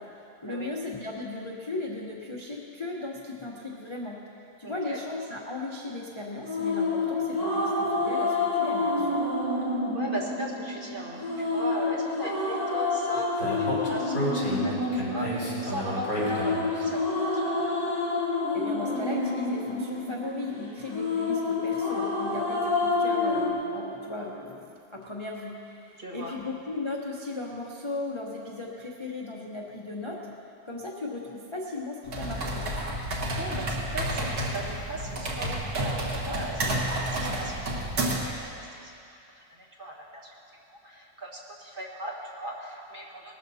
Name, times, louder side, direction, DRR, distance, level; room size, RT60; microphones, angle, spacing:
voice 1, 0.0-9.2 18.5-30.3 30.6-32.7, left 2 dB, 30° left, -3 dB, 0.6 m, -36 dB
voice 2, 4.6-5.0 9.9-17.6 26.0-26.4 33.1-39.0 39.5-40.3 40.7-43.4, right 1 dB, 30° right, -4 dB, 1.6 m, -38 dB
sound 1, 6.4-23.5, left 3 dB, 85° left, 3.7 m, -28 dB
Speech, 13.4-16.8, equal, 50° left, 4.1 m, -31 dB
sound 2, 32.0-38.4, right 1 dB, 60° right, 2.0 m, -30 dB
19.5 x 13.0 x 2.8 m, 2.6 s
omnidirectional pair, 1.9 m